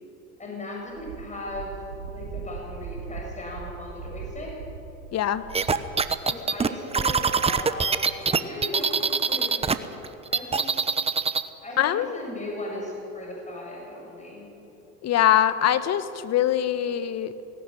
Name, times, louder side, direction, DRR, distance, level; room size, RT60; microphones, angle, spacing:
voice 1, 0.4-4.5 6.2-8.0 8.3-9.7 10.3-11.2 11.6-14.5, left 1 dB, 15° left, -2 dB, 7.4 m, -37 dB
Wind, 0.9-6.2, right 6 dB, 75° right, 2.8 m, -40 dB
voice 2, 5.1-5.4 11.8-12.1 15.0-17.3, left 11 dB, 35° left, 12 dB, 1.3 m, -22 dB
sound 1, 5.5-9.7 10.0-11.5, right 5 dB, 15° right, 0.9 m, -23 dB
18.5 x 18.5 x 9.4 m, 2.9 s
hypercardioid pair, 90°, 44 cm